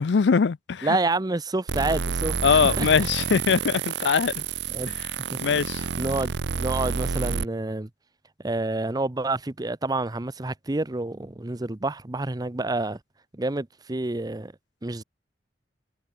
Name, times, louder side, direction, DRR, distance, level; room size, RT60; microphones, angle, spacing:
voice 1, 0.0-1.0 2.4-4.4 4.9-5.0 5.4-5.8, left 6 dB, 85° left, 0.5 m, -22 dB
voice 2, 0.8-2.9 4.7-4.9 5.8-7.9 8.4-13.0 13.3-14.5 14.8-15.0, right 2 dB, 25° right, 0.7 m, -28 dB
sound 1, 1.7-7.4, right 5 dB, 80° right, 0.7 m, -29 dB
head